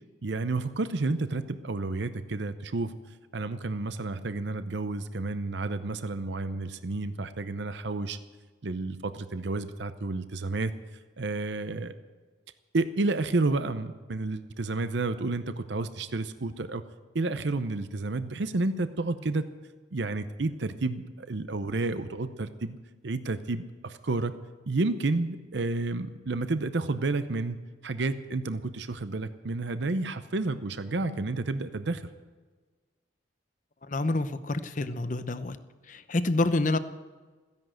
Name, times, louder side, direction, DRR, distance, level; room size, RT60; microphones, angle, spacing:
voice 1, 0.2-2.9 3.3-8.2 8.6-10.7 11.2-11.9 12.7-16.8 17.1-19.4 19.9-22.8 23.0-24.3 24.7-27.6 27.8-32.0, right 3 dB, 70° right, 11 dB, 0.7 m, -30 dB
voice 2, 33.9-35.6 35.9-36.8, left 2 dB, 40° left, 11 dB, 0.7 m, -27 dB
15.5 x 10.5 x 7.8 m, 1.4 s
head